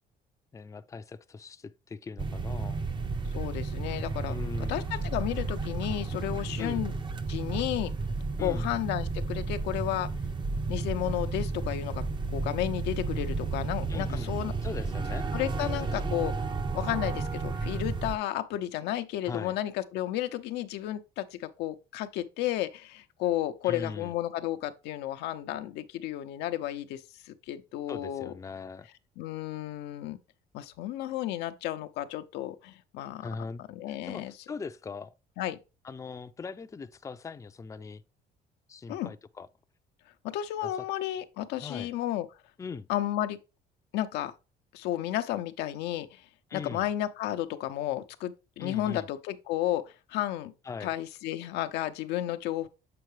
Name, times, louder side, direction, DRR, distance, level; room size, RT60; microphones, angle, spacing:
voice 1, 0.5-2.9 4.3-4.8 6.6-6.9 8.4-8.7 13.9-14.3 14.6-15.3 16.0-16.2 19.3-19.6 23.6-24.1 27.9-28.9 33.2-35.1 35.8-38.0 38.7-39.5 40.6-40.7 41.6-41.9 42.6-42.9 46.5-46.8 48.6-49.1 50.6-50.9, left 4 dB, 20° left, 0.5 m, -40 dB
sound 1, 2.2-18.2, right 4 dB, 30° right, 0.6 m, -32 dB
voice 2, 3.3-4.3 4.7-6.9 7.3-7.9 8.4-10.1 10.7-12.0 12.3-14.5 15.3-16.3 16.7-28.3 29.2-30.2 30.5-33.2 33.7-34.3 35.4-35.6 38.9-39.1 40.2-42.3 42.9-43.4 43.9-44.3 44.7-46.2 46.5-49.8 50.1-50.5 50.8-52.7, left 13 dB, 85° left, 0.7 m, -32 dB
7.7 x 4.6 x 3.3 m
cardioid pair, 110°, 17 cm